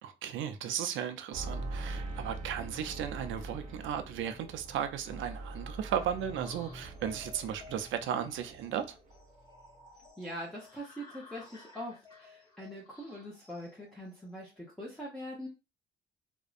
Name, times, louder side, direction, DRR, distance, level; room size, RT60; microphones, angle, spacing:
voice 1, 0.0-9.0, right 9 dB, 75° right, 0.4 m, -35 dB
sound 1, 1.3-8.8 9.1-9.8 10.0-10.1, right 2 dB, 40° right, 0.8 m, -43 dB
sound 2, 6.2-14.6, left 4 dB, 20° left, 1.3 m, -56 dB
voice 2, 10.2-15.5, equal, 5° left, 0.7 m, -43 dB
2.6 x 2.1 x 2.4 m
cardioid pair, 90°, 20 cm